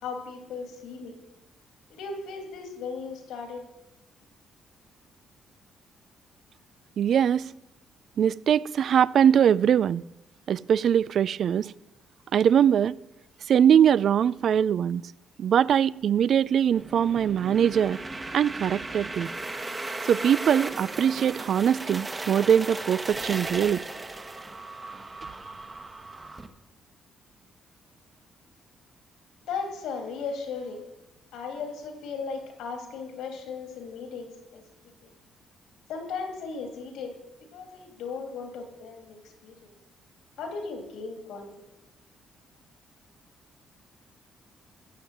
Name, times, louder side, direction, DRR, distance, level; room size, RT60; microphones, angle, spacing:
voice 1, 0.0-1.2 2.0-3.6 29.5-30.8 31.3-34.6 35.0-35.1 35.9-37.2 37.5-39.7 40.4-41.7, left 5 dB, 85° left, 2.8 m, -36 dB
voice 2, 7.0-7.5 8.2-10.0 10.5-11.7 12.3-13.0 13.5-15.1 15.4-18.0 18.3-19.3 20.0-23.8, right 8 dB, 60° right, 0.4 m, -22 dB
sound 1, 16.7-26.5, right 2 dB, 20° right, 1.2 m, -36 dB
15.0 x 7.3 x 7.7 m
cardioid pair, 90°, 0 cm